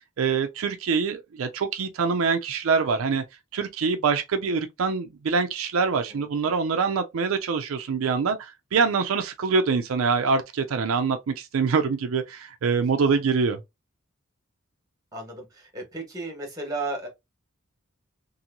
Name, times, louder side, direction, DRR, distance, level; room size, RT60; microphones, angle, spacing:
voice 1, 0.0-3.2 3.5-13.6, right 5 dB, 75° right, 0.4 m, -25 dB
voice 2, 5.9-6.3 12.9-13.0 15.1-17.1, right 2 dB, 15° right, 1.3 m, -34 dB
2.9 x 2.6 x 2.5 m
head